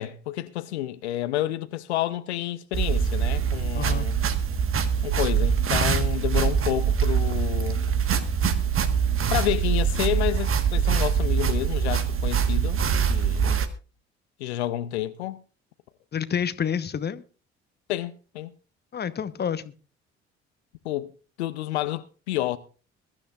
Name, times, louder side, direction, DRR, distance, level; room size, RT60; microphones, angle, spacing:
voice 1, 0.0-4.1 5.0-7.8 9.3-12.8 13.1-13.6 14.4-15.4 17.9-18.5 20.8-21.1 21.4-22.6, left 14 dB, 75° left, 0.7 m, -29 dB
sound 1, 2.7-13.7, right 7 dB, 40° right, 1.5 m, -24 dB
voice 2, 3.7-4.1 16.1-17.2 18.9-19.7, left 8 dB, 30° left, 1.0 m, -28 dB
21.5 x 13.0 x 2.4 m
figure-of-eight pair, 50°, 33 cm